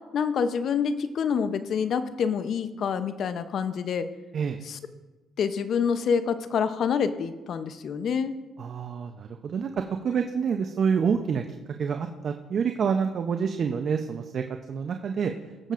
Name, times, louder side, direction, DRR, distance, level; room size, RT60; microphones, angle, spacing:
voice 1, 0.1-4.1 4.7-4.8 5.4-8.3, left 6 dB, 60° left, 11 dB, 0.6 m, -27 dB
voice 2, 8.6-9.7 10.0-11.4 11.8-15.3, right 6 dB, 55° right, 5 dB, 0.6 m, -27 dB
17.0 x 7.2 x 2.5 m, 1.2 s
cardioid pair, 85°, 0 cm